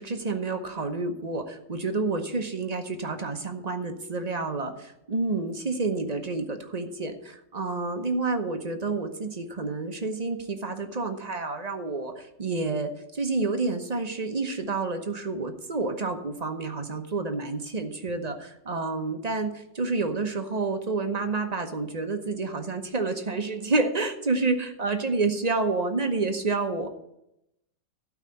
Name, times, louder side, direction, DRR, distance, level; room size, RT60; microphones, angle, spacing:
voice 1, 0.0-26.9, right 3 dB, 30° right, 5 dB, 0.8 m, -29 dB
12.0 x 4.9 x 8.4 m, 0.82 s
omnidirectional pair, 1.9 m